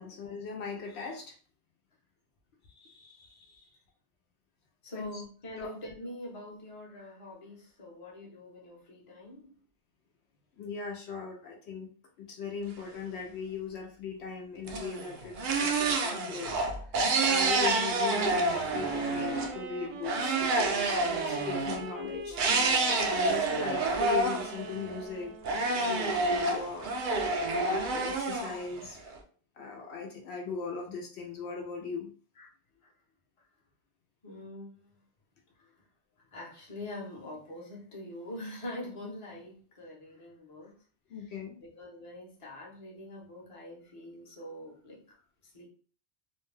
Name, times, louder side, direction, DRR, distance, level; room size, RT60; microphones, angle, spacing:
voice 1, 0.0-1.4 2.8-3.7 4.9-5.2 5.6-5.7 10.5-11.9 12.2-16.5 17.3-22.4 23.1-26.9 27.4-29.1 29.6-32.1 41.1-41.5, left 4 dB, 75° left, 1 dB, 0.9 m, -39 dB
voice 2, 4.8-9.6 32.4-32.5 32.8-32.9 34.2-35.0 35.6-35.7 36.3-40.8 41.2-45.2 45.4-45.7, left 1 dB, 35° left, -3 dB, 0.8 m, -44 dB
sound 1, 14.7-19.5 20.0-21.8 22.4-25.1 25.4-29.2, right 3 dB, 60° right, 0.6 m, -28 dB
Wind instrument woodwind instrument, 18.6-25.8, right 4 dB, 85° right, 0.9 m, -42 dB
2.5 x 2.2 x 3.2 m, 0.42 s
omnidirectional pair, 1.2 m